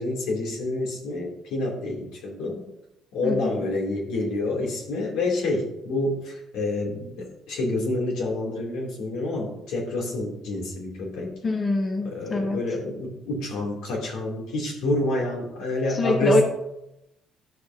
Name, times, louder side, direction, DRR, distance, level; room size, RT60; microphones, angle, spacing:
voice 1, 0.0-2.7 3.1-11.4 12.0-16.4, left 1 dB, 85° left, -2 dB, 2.8 m, -28 dB
voice 2, 3.2-3.7 11.4-12.6 15.9-16.4, left 2 dB, 30° left, 2 dB, 1.1 m, -24 dB
12.0 x 6.6 x 2.8 m, 0.87 s
cardioid pair, 115°, 0 cm